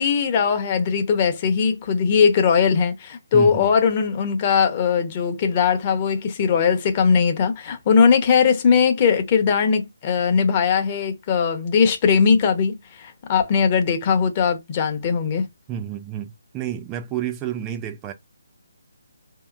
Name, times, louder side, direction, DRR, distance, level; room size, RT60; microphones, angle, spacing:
voice 1, 0.0-15.5, left 6 dB, 30° left, 0.8 m, -19 dB
voice 2, 3.3-3.7 15.7-18.1, right 10 dB, 15° right, 0.4 m, -30 dB
4.8 x 2.8 x 2.4 m
figure-of-eight pair, 150°, 0 cm